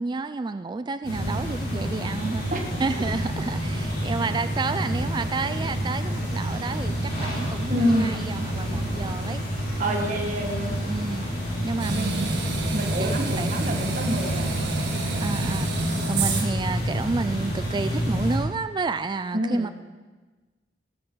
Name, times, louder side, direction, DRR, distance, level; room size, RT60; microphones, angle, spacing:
voice 1, 0.0-2.4 2.8-9.4 9.9-10.3 10.8-11.3 11.6-12.4 13.0-13.5 15.1-19.7, right 3 dB, 25° right, 12 dB, 0.3 m, -30 dB
sound 1, 1.0-18.4, equal, 60° left, 4.6 m, -29 dB
voice 2, 7.7-8.1 9.8-10.8 11.9-14.8 19.3-19.7, equal, 45° right, 1 dB, 1.7 m, -28 dB
sound 2, 11.8-16.7, right 2 dB, 65° right, 1.7 m, -28 dB
19.0 x 12.0 x 3.9 m, 1.3 s
head